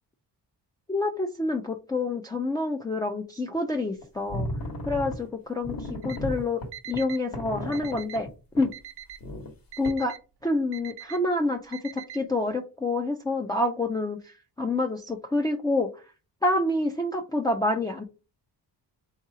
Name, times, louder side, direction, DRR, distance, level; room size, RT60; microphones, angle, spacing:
voice 1, 0.9-4.5 4.9-6.6 6.9-8.3 8.5-8.7 9.8-10.1 10.4-16.0 16.4-18.0, left 2 dB, 10° left, 0 dB, 0.4 m, -27 dB
sound 1, 4.0-4.1 4.3-5.2 5.6-8.3 8.6-8.7 9.2-9.5 9.8-9.9, left 1 dB, 60° left, 1.3 m, -34 dB
Alarm, 6.0-6.2 6.7-7.2 7.7-8.2 8.7-9.2 9.7-10.2 10.7-11.2 11.7-12.2, right 11 dB, 85° right, 0.6 m, -42 dB
3.7 x 2.9 x 4.7 m, 0.31 s
wide cardioid pair, 145°, 39 cm